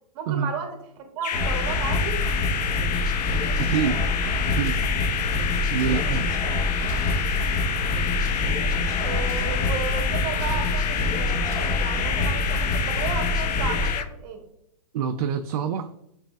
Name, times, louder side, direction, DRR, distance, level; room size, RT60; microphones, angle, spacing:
voice 1, 0.1-0.8 1.1-2.2 9.0-14.5, right 6 dB, 40° right, 4 dB, 1.0 m, -34 dB
sound 1, 1.2-14.1, left 9 dB, 75° left, 0.4 m, -29 dB
sound 2, 1.3-13.9, left 2 dB, 20° left, 0.9 m, -26 dB
sound 3, 3.6-4.0 4.6-5.0 5.8-6.1 6.8-7.3 8.2-8.6 9.2-9.7 10.4-10.7 11.4-11.9, equal, 35° left, 1.4 m, -40 dB
voice 2, 3.7-4.1 4.4-4.8 5.7-6.3 14.9-15.9, right 7 dB, 60° right, 7 dB, 0.4 m, -26 dB
5.9 x 3.3 x 2.3 m, 0.78 s
hypercardioid pair, 135°, 21 cm